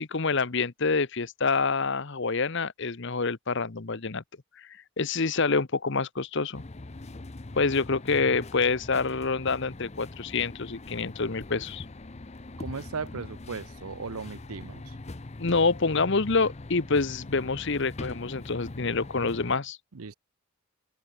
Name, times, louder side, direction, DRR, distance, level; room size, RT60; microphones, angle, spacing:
voice 1, 0.0-4.2 4.6-4.7 5.0-6.6 7.6-11.8 15.4-19.8, left 4 dB, 55° left, 1.0 m, -27 dB
sound 1, 6.5-19.6, left 2 dB, 30° left, 0.7 m, -42 dB
voice 2, 12.6-14.9 19.9-20.1, right 5 dB, 85° right, 0.8 m, -37 dB
open air
head